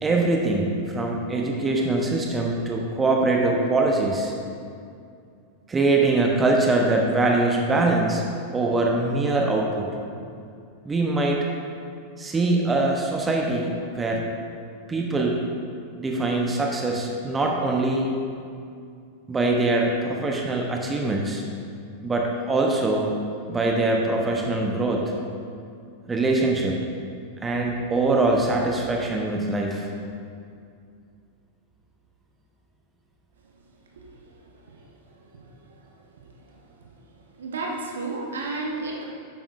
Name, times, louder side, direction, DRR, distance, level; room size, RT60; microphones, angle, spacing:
voice 1, 0.0-4.3 5.7-8.2 8.5-9.9 10.8-11.5 12.2-14.3 14.9-15.4 15.9-18.1 19.3-21.4 22.0-23.2 23.5-25.1 26.1-26.8 27.4-29.9, right 2 dB, 15° right, 0 dB, 0.9 m, -23 dB
voice 2, 34.5-34.9 35.2-35.9 36.4-36.6 37.4-39.0, right 3 dB, 65° right, -1 dB, 1.3 m, -33 dB
11.0 x 8.9 x 2.6 m, 2.4 s
figure-of-eight pair, 90°, 0 cm